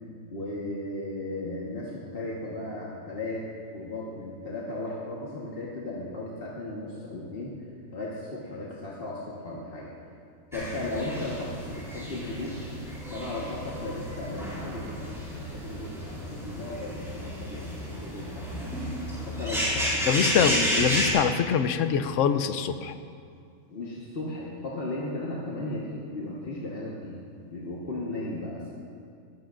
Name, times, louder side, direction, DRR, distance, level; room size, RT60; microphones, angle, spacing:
voice 1, 0.3-3.4 3.7-7.5 7.9-9.9 10.5-12.6 13.1-18.7 19.2-20.5 23.7-27.2 27.5-28.7, left 2 dB, 40° left, -5 dB, 1.5 m, -36 dB
sound 1, 10.5-21.1, equal, ahead, 3.6 m, -32 dB
voice 2, 20.1-22.9, left 7 dB, 65° left, 10 dB, 0.9 m, -24 dB
16.0 x 14.5 x 2.6 m, 2.4 s
omnidirectional pair, 1.5 m